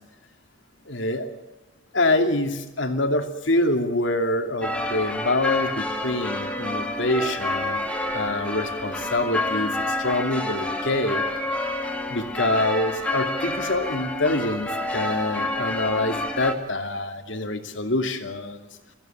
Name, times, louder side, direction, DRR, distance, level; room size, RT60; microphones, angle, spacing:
voice 1, 0.9-1.3 1.9-7.8 8.1-11.2 12.1-18.7, left 2 dB, 75° left, 6 dB, 2.7 m, -25 dB
sound 1, 4.6-16.5, left 1 dB, 5° left, 2.5 m, -28 dB
24.0 x 16.0 x 9.2 m, 1.0 s
head